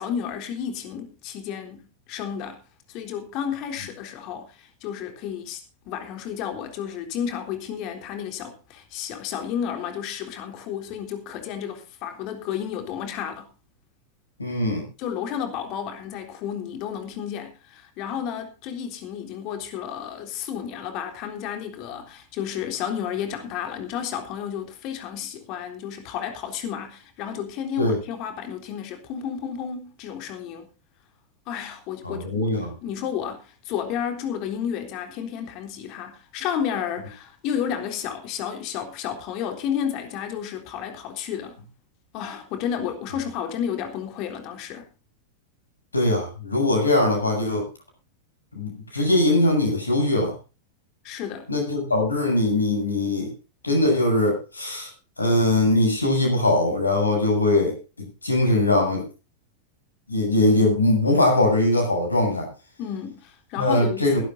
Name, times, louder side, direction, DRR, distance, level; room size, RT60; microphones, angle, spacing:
voice 1, 0.0-2.6 2.9-13.5 15.0-30.7 31.5-32.5 32.8-41.6 42.1-44.9 51.0-51.5 62.8-64.2, left 8 dB, 40° left, 3.7 m, -32 dB
voice 2, 14.4-14.8 27.8-28.0 32.0-32.7 45.9-47.6 48.5-50.3 51.5-53.3 53.6-54.9 55.2-57.8 58.2-59.0 60.1-62.5 63.6-64.2, left 2 dB, 80° left, 7.7 m, -21 dB
21.5 x 12.5 x 2.7 m
figure-of-eight pair, 90°, 0 cm